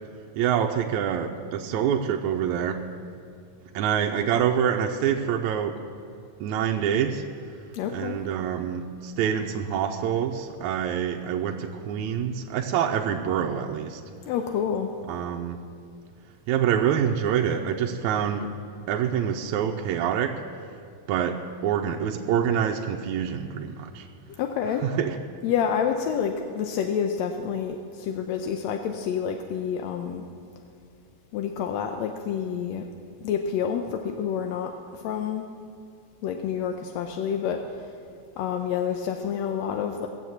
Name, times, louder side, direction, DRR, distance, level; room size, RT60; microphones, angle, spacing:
voice 1, 0.4-2.9 3.7-5.8 6.4-7.2 7.9-14.0 15.1-15.6 16.5-18.5 18.9-20.4 21.1-24.1 24.8-25.2, right 8 dB, 80° right, 3 dB, 1.9 m, -26 dB
voice 2, 7.7-8.2 14.3-14.9 24.4-24.8 25.4-30.2 31.3-32.9 33.2-35.4 36.2-37.9 38.4-40.1, left 7 dB, 75° left, 4 dB, 1.7 m, -28 dB
18.5 x 7.5 x 7.8 m, 2.3 s
omnidirectional pair, 3.6 m